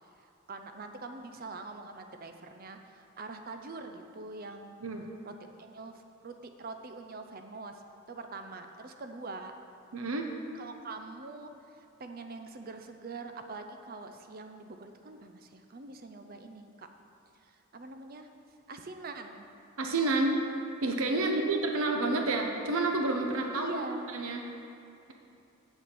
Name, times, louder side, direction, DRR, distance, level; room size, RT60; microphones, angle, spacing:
voice 1, 0.5-4.8 5.3-5.4 5.6-7.8 8.1-9.5 10.5-16.9 17.4-18.3 18.7-19.5 21.2-21.5 23.5-24.1, right 3 dB, 45° right, 6 dB, 0.5 m, -44 dB
voice 2, 9.9-10.3 19.8-20.4 20.8-23.7 24.1-24.4, right 2 dB, 80° right, 3 dB, 0.9 m, -29 dB
8.0 x 6.7 x 7.6 m, 2.7 s
head